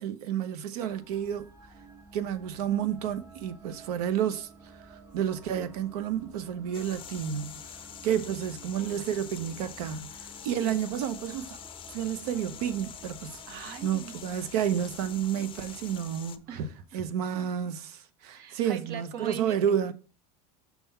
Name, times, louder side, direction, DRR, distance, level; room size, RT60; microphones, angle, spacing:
voice 1, 0.0-1.5 2.1-11.6 11.9-16.5 16.9-19.9, right 9 dB, 85° right, 0.9 m, -31 dB
sound 1, 0.8-17.0, right 3 dB, 15° right, 1.6 m, -53 dB
sound 2, 6.7-16.4, left 10 dB, 25° left, 0.5 m, -45 dB
voice 2, 13.5-14.4 16.5-17.0 18.2-19.6, right 6 dB, 55° right, 0.9 m, -39 dB
5.9 x 3.6 x 5.6 m
supercardioid pair, 140°, 20 cm